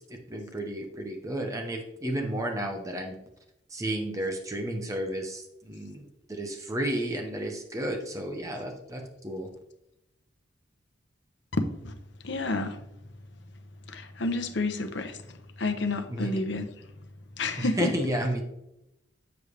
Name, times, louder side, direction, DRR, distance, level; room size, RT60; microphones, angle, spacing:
voice 1, 0.3-3.1 3.7-6.0 6.3-9.5 16.1-16.3 17.6-18.4, right 1 dB, 15° right, 2 dB, 1.0 m, -32 dB
voice 2, 11.5-12.0 12.2-12.8 13.9-15.2 15.6-16.7 17.4-18.1, left 2 dB, 60° left, 7 dB, 0.8 m, -30 dB
8.2 x 7.1 x 3.3 m, 0.83 s
head